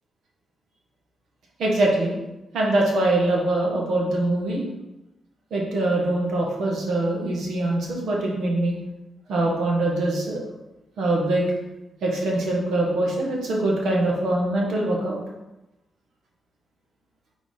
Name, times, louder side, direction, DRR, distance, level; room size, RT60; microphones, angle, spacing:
voice 1, 1.6-2.1 2.5-4.6 5.5-8.8 9.3-10.4 11.0-11.5 12.0-15.2, right 2 dB, 85° right, -2 dB, 1.5 m, -23 dB
4.3 x 4.3 x 5.5 m, 1.0 s
cardioid pair, 115°, 0 cm